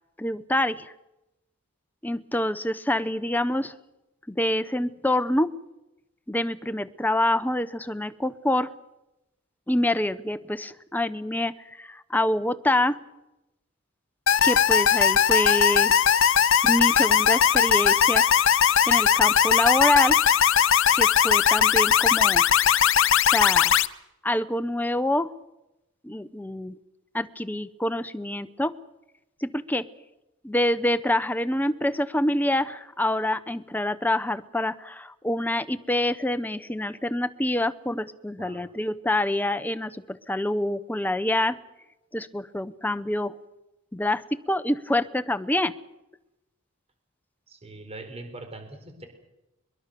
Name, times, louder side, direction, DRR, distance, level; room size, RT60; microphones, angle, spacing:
voice 1, 0.2-0.9 2.0-3.7 4.3-5.5 6.3-8.7 9.7-13.0 14.4-15.9 16.6-18.2 18.9-20.2 20.9-22.4 23.3-23.8 24.2-25.3 26.0-26.8 27.1-28.7 29.4-29.8 30.4-41.6 42.1-43.3 43.9-45.7, left 1 dB, 10° left, 12 dB, 0.8 m, -26 dB
sound 1, 14.3-23.9, left 8 dB, 65° left, 0.7 m, -19 dB
voice 2, 38.4-38.7 47.5-49.1, right 2 dB, 30° right, 6 dB, 4.5 m, -42 dB
22.5 x 22.5 x 6.9 m, 0.93 s
head